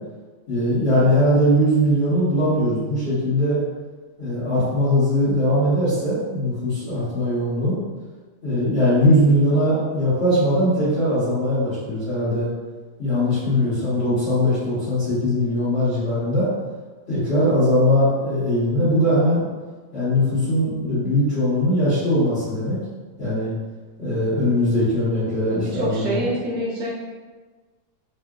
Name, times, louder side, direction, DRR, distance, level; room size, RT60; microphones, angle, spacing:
voice 1, 0.5-3.6 4.2-7.8 8.4-12.5 13.0-16.5 17.1-19.4 19.9-22.8 23.2-23.5 24.0-26.2, equal, 35° left, -13 dB, 1.2 m, -20 dB
voice 2, 13.4-13.7 25.5-27.0, equal, 75° right, -5 dB, 1.3 m, -27 dB
3.7 x 2.4 x 2.3 m, 1.3 s
omnidirectional pair, 2.2 m